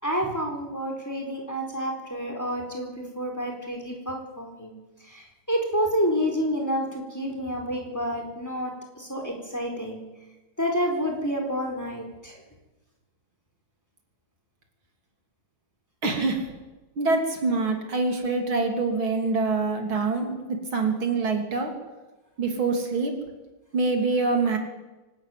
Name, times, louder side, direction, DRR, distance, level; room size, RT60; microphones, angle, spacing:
voice 1, 0.0-4.7 5.1-10.0 10.6-12.4, equal, 10° left, 1 dB, 4.3 m, -29 dB
voice 2, 16.0-16.5 17.0-21.7 22.4-23.2 23.7-24.6, right 3 dB, 80° right, 3 dB, 3.8 m, -25 dB
24.5 x 13.0 x 9.4 m, 1.1 s
omnidirectional pair, 2.2 m